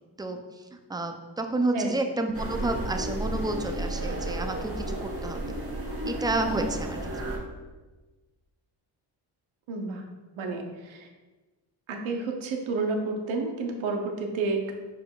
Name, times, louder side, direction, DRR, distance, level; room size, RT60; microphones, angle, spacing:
voice 1, 0.9-5.5 6.0-7.0 7.3-7.4, right 2 dB, 10° right, 5 dB, 0.4 m, -30 dB
sound 1, 2.3-7.4, right 1 dB, 30° right, 1.2 m, -32 dB
voice 2, 9.7-10.1 10.4-11.1 11.9-14.7, right 3 dB, 75° right, 3 dB, 0.9 m, -30 dB
4.8 x 4.7 x 2.3 m, 1.2 s
cardioid pair, 70°, 48 cm